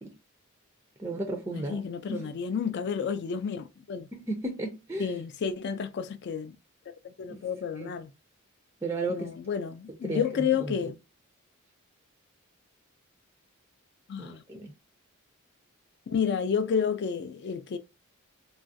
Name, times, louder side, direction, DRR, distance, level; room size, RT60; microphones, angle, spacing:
voice 1, 1.0-2.3 4.1-5.1 7.3-7.4 7.8-7.9 8.8-9.3 10.0-10.9 14.2-14.7, right 2 dB, 10° right, 0.4 m, -34 dB
voice 2, 1.5-4.1 5.0-6.5 7.2-8.1 9.1-11.0 14.1-14.4 16.1-17.8, left 7 dB, 50° left, 0.4 m, -30 dB
3.0 x 2.4 x 2.5 m
head